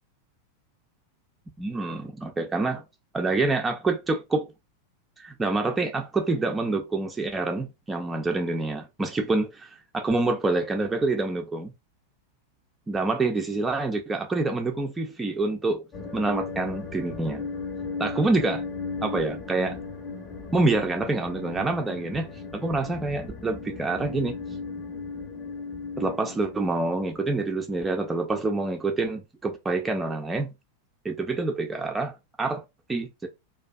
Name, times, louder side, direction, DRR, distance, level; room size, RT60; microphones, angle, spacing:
voice 1, 1.6-2.8 3.1-4.5 5.2-11.7 12.9-15.8 16.1-17.4 18.0-18.6 19.0-19.8 20.5-24.4 26.0-30.5 31.0-32.6 32.9-33.3, right 3 dB, 10° right, 0.4 m, -27 dB
sound 1, 15.9-27.9, left 4 dB, 25° left, 0.7 m, -37 dB
2.5 x 2.3 x 2.2 m
figure-of-eight pair, 90°, 0 cm